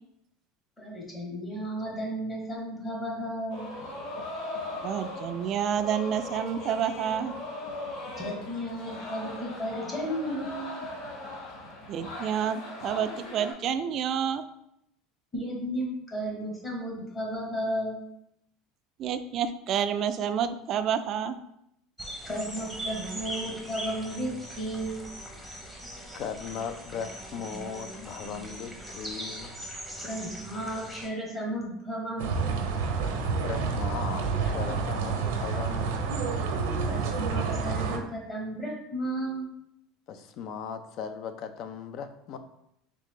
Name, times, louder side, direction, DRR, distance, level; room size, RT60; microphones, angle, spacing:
voice 1, 0.8-3.7 8.2-10.8 15.3-18.0 22.3-25.0 30.0-32.5 36.9-39.5, right 1 dB, 25° left, -1 dB, 1.3 m, -34 dB
sound 1, 3.5-13.5, left 2 dB, 70° left, 1.2 m, -39 dB
voice 2, 4.8-7.3 11.9-14.4 19.0-21.4, right 8 dB, 45° right, 11 dB, 0.3 m, -29 dB
sound 2, 22.0-31.1, right 1 dB, 5° left, 0.9 m, -40 dB
voice 3, 25.4-29.6 31.5-31.6 33.3-36.2 40.1-42.4, left 7 dB, 50° left, 9 dB, 0.4 m, -38 dB
sound 3, 32.2-38.0, right 5 dB, 90° right, 0.6 m, -29 dB
3.7 x 3.3 x 3.6 m, 0.79 s
supercardioid pair, 135°, 0 cm